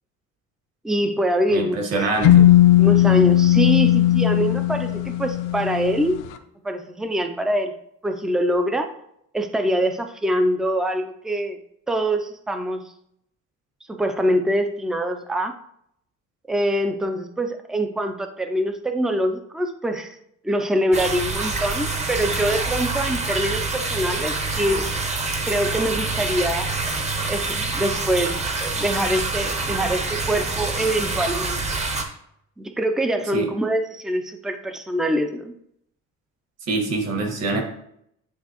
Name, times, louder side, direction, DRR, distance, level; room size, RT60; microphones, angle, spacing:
voice 1, 0.8-2.3 2.8-6.2 6.6-7.7 8.0-8.9 9.3-11.6 11.9-12.8 13.9-15.6 16.5-20.2 20.4-24.9 25.5-26.7 27.3-31.6 32.6-35.5, right 1 dB, ahead, 7 dB, 0.3 m, -24 dB
voice 2, 1.5-2.5 33.3-33.5 36.7-37.6, right 3 dB, 55° right, 2 dB, 1.5 m, -24 dB
sound 1, 2.2-6.1, left 14 dB, 85° left, 0.6 m, -17 dB
sound 2, 20.9-32.0, right 3 dB, 20° right, 0.7 m, -26 dB
9.5 x 3.4 x 2.9 m, 0.73 s
cardioid pair, 150°, 31 cm